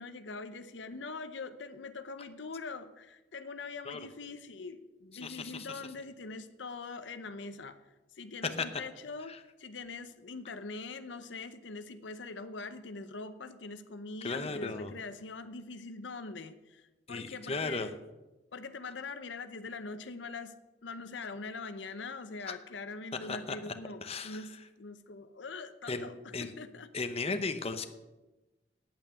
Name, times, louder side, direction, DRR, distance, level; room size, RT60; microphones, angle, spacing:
voice 1, 0.0-9.3 9.6-18.0 18.5-26.9, left 3 dB, 85° left, 10 dB, 0.7 m, -43 dB
voice 2, 5.2-5.7 8.6-8.7 9.3-9.4 14.2-14.9 17.1-17.9 22.4-22.6 23.3-23.6 24.0-24.5 25.9-26.5 26.9-27.8, left 4 dB, 35° left, 8 dB, 0.9 m, -35 dB
8.8 x 8.6 x 8.8 m, 1.1 s
head